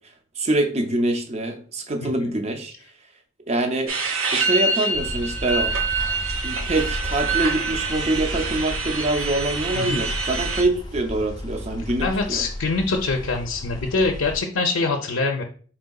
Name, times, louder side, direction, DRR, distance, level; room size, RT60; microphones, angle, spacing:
voice 1, 0.4-2.7 3.5-4.0 4.3-5.8 6.4-12.5, right 2 dB, 30° right, 0.5 m, -25 dB
sound 1, 3.9-10.6, right 4 dB, 90° right, 0.7 m, -26 dB
sound 2, 4.9-14.4, left 1 dB, 20° left, 0.4 m, -34 dB
voice 2, 12.0-15.4, left 3 dB, 85° left, 0.5 m, -24 dB
4.5 x 3.7 x 2.2 m
head